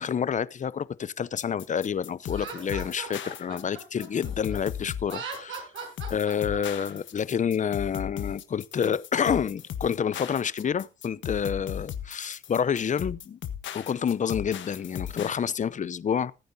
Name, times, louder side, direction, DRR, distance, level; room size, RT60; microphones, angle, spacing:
voice 1, 0.0-5.6 6.1-13.4 13.7-16.3, left 7 dB, 40° left, 0.7 m, -28 dB
sound 1, 1.4-15.4, left 9 dB, 70° left, 1.5 m, -37 dB
Laughter, 2.3-4.6 5.0-6.8, right 5 dB, 75° right, 5.7 m, -39 dB
20.0 x 9.4 x 2.8 m
cardioid pair, 90°, 20 cm